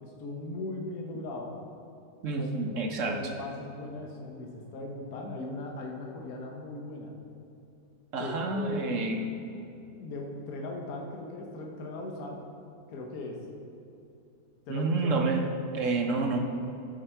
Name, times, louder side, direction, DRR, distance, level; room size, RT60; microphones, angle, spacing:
voice 1, 0.0-1.5 2.3-2.5 3.0-7.1 8.2-9.0 10.0-12.4 12.9-13.5 14.7-15.3, left 2 dB, 65° left, 0 dB, 1.4 m, -38 dB
voice 2, 2.2-3.2 8.1-9.3 14.7-15.5 15.7-16.4, right 3 dB, 60° right, 3 dB, 1.0 m, -28 dB
12.5 x 5.2 x 4.4 m, 2.7 s
omnidirectional pair, 1.8 m